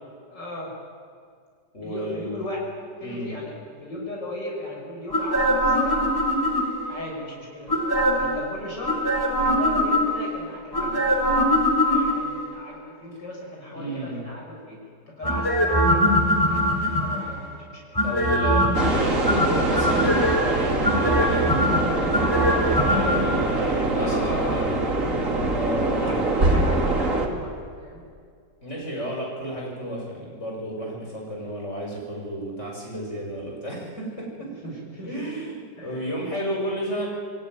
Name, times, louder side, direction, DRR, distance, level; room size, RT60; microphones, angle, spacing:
voice 1, 0.3-0.8 1.8-3.5 3.8-6.1 6.8-7.7 8.1-9.0 9.4-11.1 11.8-14.8 15.1-18.0 23.9-24.7 25.8-28.1 34.6-35.3 35.8-36.1, left 1 dB, 75° left, -2 dB, 7.2 m, -37 dB
voice 2, 1.7-2.4 3.0-3.3 13.7-14.3 18.0-24.8 25.5-26.2 28.6-34.7 35.0-37.1, equal, 40° left, -1 dB, 7.1 m, -32 dB
sound 1, 5.1-6.9 7.7-8.4 8.8-10.3 10.7-12.4 15.2-17.4 17.9-18.9 19.2-20.4 20.8-23.2 23.5-23.6, equal, 10° left, 4.0 m, -22 dB
sound 2, 18.7-27.3, right 2 dB, 45° right, 2.9 m, -24 dB
28.5 x 21.0 x 9.7 m, 2.2 s
omnidirectional pair, 1.9 m